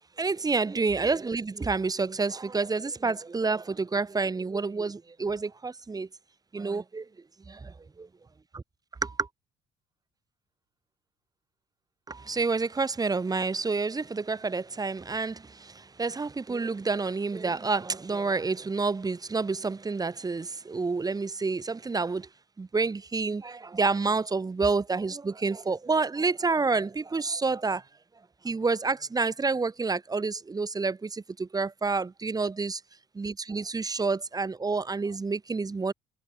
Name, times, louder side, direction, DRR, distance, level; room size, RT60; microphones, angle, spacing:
voice 1, 0.2-6.1 6.5-7.1 7.5-7.7 8.5-8.6 9.0-9.3 12.1-22.3 22.6-27.8 28.4-32.8 33.1-35.9, right 4 dB, 20° right, 4.5 m, -29 dB
cardioid pair, 110°, 17 cm